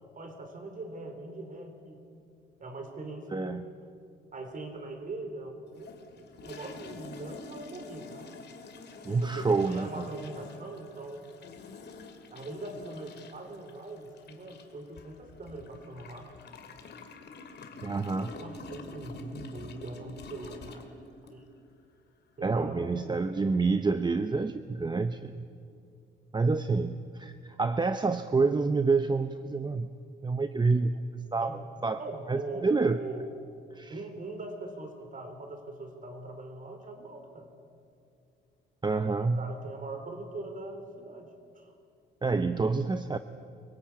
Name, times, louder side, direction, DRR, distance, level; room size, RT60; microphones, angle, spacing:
voice 1, 0.2-2.0 2.6-3.5 4.3-8.3 9.1-11.3 12.3-16.3 18.4-21.4 22.4-23.1 31.4-31.6 32.0-33.3 33.9-37.5 39.3-41.7, right 2 dB, 40° right, 6 dB, 3.7 m, -41 dB
voice 2, 3.3-3.7 9.0-10.1 17.8-18.3 22.4-25.5 26.3-29.9 30.2-32.0 32.3-33.0 33.7-33.9 38.8-39.4 42.2-43.2, right 4 dB, 20° right, 10 dB, 0.7 m, -28 dB
sound 1, 5.7-21.6, left 3 dB, 60° left, 2.2 m, -47 dB
25.0 x 17.0 x 8.5 m, 2.5 s
cardioid pair, 90°, 20 cm